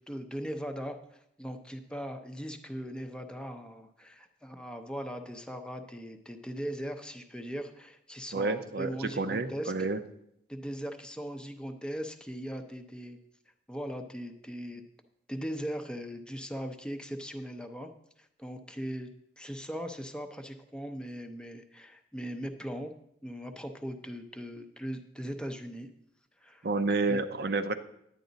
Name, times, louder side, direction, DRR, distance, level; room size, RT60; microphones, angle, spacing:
voice 1, 0.0-9.7 10.5-13.2 13.7-14.8 15.3-17.9 18.2-19.1 19.4-22.9 23.2-25.9 26.4-26.7 27.1-27.2, equal, 5° left, 6 dB, 0.6 m, -39 dB
voice 2, 8.3-10.0 26.6-27.7, right 3 dB, 60° right, 9 dB, 0.6 m, -29 dB
10.5 x 9.1 x 4.0 m, 0.74 s
head